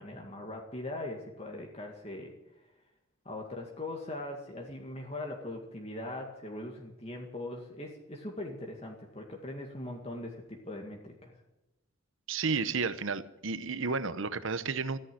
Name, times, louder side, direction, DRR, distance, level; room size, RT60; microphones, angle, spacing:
voice 1, 0.0-2.3 3.3-11.3, left 1 dB, 30° left, 1 dB, 2.1 m, -40 dB
voice 2, 12.3-15.0, right 4 dB, 70° right, 14 dB, 0.9 m, -32 dB
14.5 x 10.0 x 9.8 m, 0.94 s
head